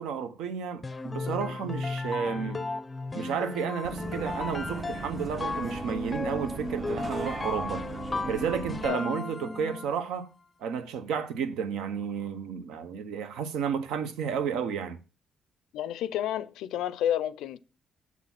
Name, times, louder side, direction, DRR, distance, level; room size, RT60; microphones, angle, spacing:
voice 1, 0.0-2.7 3.1-7.9 8.3-10.3 10.6-15.0, right 7 dB, 90° right, 0.7 m, -32 dB
sound 1, 0.8-10.0, left 3 dB, 25° left, 0.4 m, -35 dB
Bus, 3.8-8.9, right 4 dB, 40° right, 0.8 m, -39 dB
voice 2, 15.7-17.6, left 11 dB, 90° left, 0.4 m, -30 dB
7.1 x 4.1 x 5.8 m
cardioid pair, 90°, 0 cm